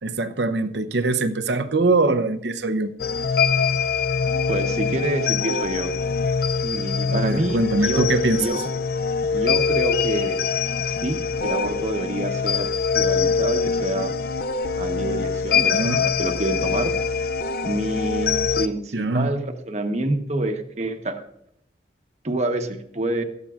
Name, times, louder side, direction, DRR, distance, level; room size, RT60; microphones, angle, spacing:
voice 1, 0.0-2.9 7.1-8.4 15.6-16.0 18.9-19.4, right 2 dB, 80° right, 11 dB, 0.8 m, -23 dB
sound 1, 3.0-18.7, left 5 dB, 55° left, 0.5 m, -24 dB
voice 2, 4.5-5.9 6.6-8.1 8.3-8.6 9.3-10.4 10.9-14.1 14.8-16.9 17.6-21.2 22.2-23.2, right 1 dB, 40° right, 6 dB, 1.1 m, -27 dB
17.0 x 13.0 x 2.5 m, 0.74 s
head